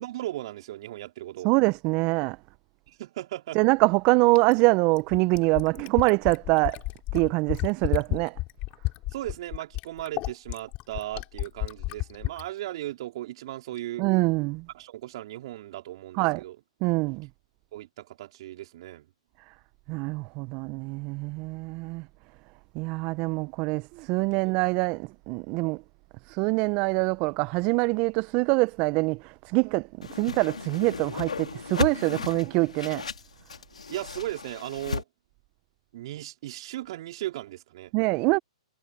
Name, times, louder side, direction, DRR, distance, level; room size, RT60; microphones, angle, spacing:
voice 1, 0.0-1.5 2.9-3.6 9.1-14.1 14.7-16.6 17.7-19.1 24.3-24.4 33.9-35.0 35.9-37.9, right 15 dB, 50° right, 4.9 m, -37 dB
voice 2, 1.4-2.4 3.5-6.8 7.1-8.4 14.0-14.7 16.1-16.4 16.8-17.3 19.5-19.6 19.9-22.1 22.7-25.8 26.3-33.1 37.9-38.4, right 26 dB, 35° right, 1.0 m, -24 dB
Fill (with liquid), 4.3-12.5 13.8-13.9, left 21 dB, 35° left, 4.9 m, -31 dB
Whoosh swoosh swish, 30.0-35.0, left 5 dB, 80° left, 3.0 m, -35 dB
hypercardioid pair, 120°, 4 cm